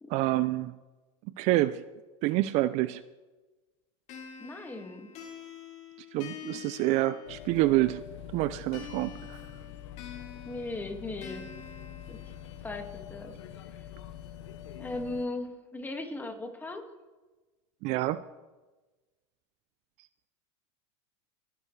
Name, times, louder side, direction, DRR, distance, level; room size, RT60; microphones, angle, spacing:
voice 1, 0.1-0.7 1.4-1.8 2.2-3.0 6.1-8.0 8.3-9.4 17.8-18.2, right 17 dB, 50° right, 15 dB, 0.5 m, -27 dB
sound 1, 4.1-7.7 8.7-12.7, left 8 dB, 50° left, 2.9 m, -47 dB
voice 2, 4.4-5.1 10.5-11.4 12.1-12.2 12.6-13.3 13.8-13.9 14.8-16.8, left 2 dB, 10° left, 4 dB, 1.9 m, -37 dB
sound 2, 7.3-15.3, left 10 dB, 80° left, 1.0 m, -45 dB
27.5 x 11.0 x 3.3 m, 1.2 s
supercardioid pair, 125°, 15 cm